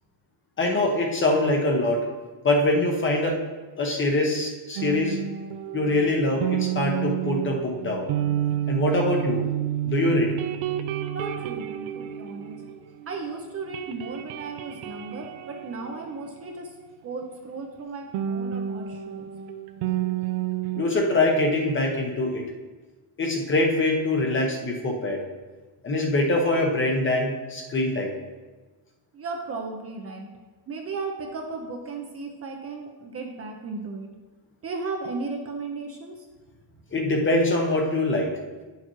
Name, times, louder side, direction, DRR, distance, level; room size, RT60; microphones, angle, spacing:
voice 1, 0.6-2.1 2.4-3.4 3.8-5.2 5.7-8.1 8.7-9.5 9.8-10.3 20.8-22.4 23.2-25.2 25.8-28.1 36.9-38.4, left 2 dB, 25° left, 1 dB, 0.8 m, -23 dB
sound 1, 4.8-13.2 13.5-17.0 18.1-20.8, right 11 dB, 75° right, 0.6 m, -30 dB
voice 2, 11.1-12.6 13.1-16.7 17.0-19.3 29.1-30.3 30.7-34.1 34.6-36.2, right 3 dB, 30° right, 2 dB, 0.7 m, -35 dB
9.3 x 6.6 x 3.1 m, 1.3 s
cardioid pair, 170°, 49 cm